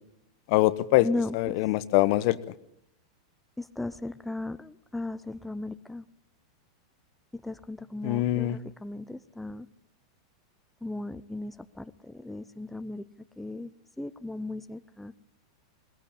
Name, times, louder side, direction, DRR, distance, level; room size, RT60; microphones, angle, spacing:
voice 1, 0.5-1.1 1.3-2.4 8.0-8.6, left 18 dB, 55° left, 17 dB, 1.0 m, -23 dB
voice 2, 1.0-1.6 3.6-6.1 7.3-9.7 10.8-13.7 14.0-15.1, left 2 dB, 5° left, 12 dB, 0.7 m, -36 dB
20.0 x 17.0 x 8.7 m, 0.77 s
hypercardioid pair, 115°, 3 cm